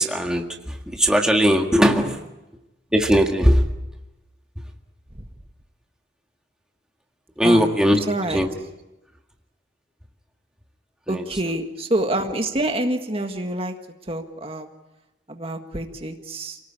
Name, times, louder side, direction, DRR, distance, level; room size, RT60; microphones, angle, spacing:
voice 1, 0.0-2.2 2.9-3.7 7.4-8.0 8.3-8.5 11.1-11.6, equal, 5° right, 2 dB, 1.8 m, -19 dB
voice 2, 8.1-8.4 11.1-13.7 14.1-14.7 15.3-16.6, right 1 dB, 30° right, 5 dB, 1.7 m, -26 dB
29.0 x 18.5 x 8.7 m, 1.0 s
head